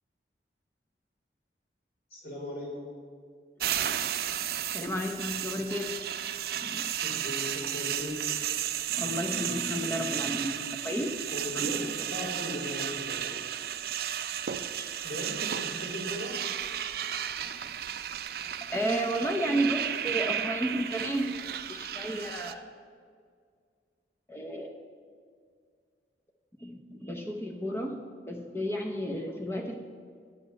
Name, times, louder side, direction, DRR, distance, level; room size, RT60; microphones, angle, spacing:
voice 1, 2.1-2.7 7.0-8.2 11.3-11.8 12.1-13.4 15.0-16.4, left 1 dB, 60° left, -3 dB, 2.7 m, -38 dB
sound 1, 3.6-22.5, right 10 dB, 55° right, 0.4 m, -33 dB
voice 2, 4.7-5.9 6.6-6.9 8.9-11.1 11.5-11.9 18.6-21.2 21.7-22.6 24.3-24.7 26.6-28.0 28.3-29.8, right 1 dB, 15° left, 2 dB, 0.6 m, -32 dB
9.1 x 7.5 x 5.2 m, 2.1 s
head